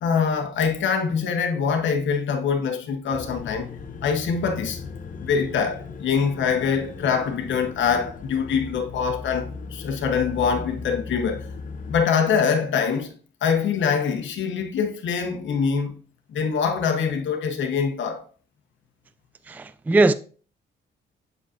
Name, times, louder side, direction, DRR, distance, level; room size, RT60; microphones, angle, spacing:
voice 1, 0.0-3.7 4.0-4.8 5.2-11.5 11.9-13.1 13.4-16.0 16.3-18.2, left 6 dB, 70° left, 1.1 m, -24 dB
sound 1, 3.1-12.0, left 4 dB, 40° left, 0.9 m, -37 dB
voice 2, 19.5-20.1, right 2 dB, 10° right, 0.3 m, -19 dB
7.7 x 5.0 x 2.6 m
cardioid pair, 90°, 20 cm